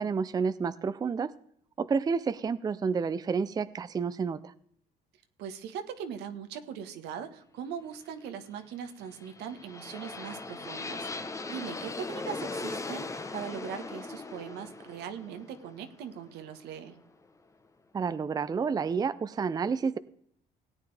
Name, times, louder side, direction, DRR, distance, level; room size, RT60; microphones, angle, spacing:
voice 1, 0.0-1.3 1.8-4.5 17.9-20.0, right 5 dB, 25° right, 15 dB, 0.4 m, -30 dB
voice 2, 5.4-17.0, right 8 dB, 80° right, 7 dB, 1.4 m, -40 dB
sound 1, 9.0-17.0, left 3 dB, 20° left, 0.9 m, -39 dB
17.5 x 9.3 x 3.4 m, 0.67 s
cardioid pair, 110°, 17 cm